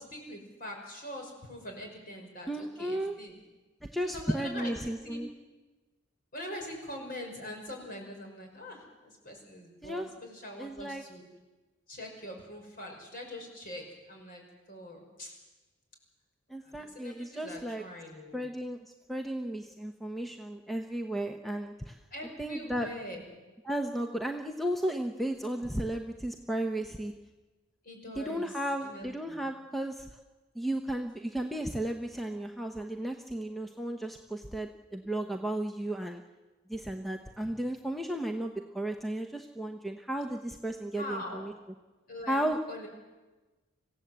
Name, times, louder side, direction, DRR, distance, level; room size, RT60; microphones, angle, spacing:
voice 1, 0.0-3.3 4.0-4.8 5.0-5.2 6.3-11.2 11.9-15.4 16.6-18.4 22.1-23.2 27.8-28.5 28.8-29.5 37.4-37.5 40.9-41.5 42.1-42.4 42.7-42.9, left 1 dB, 45° left, 2 dB, 5.6 m, -43 dB
voice 2, 2.5-3.1 3.9-5.3 9.8-10.1 10.6-11.0 16.5-17.8 18.3-18.8 19.1-22.0 22.4-22.9 23.6-27.1 28.2-30.1 30.5-36.2 36.7-41.5 42.3-42.6, right 1 dB, ahead, 4 dB, 0.9 m, -34 dB
26.5 x 16.0 x 8.0 m, 1.2 s
head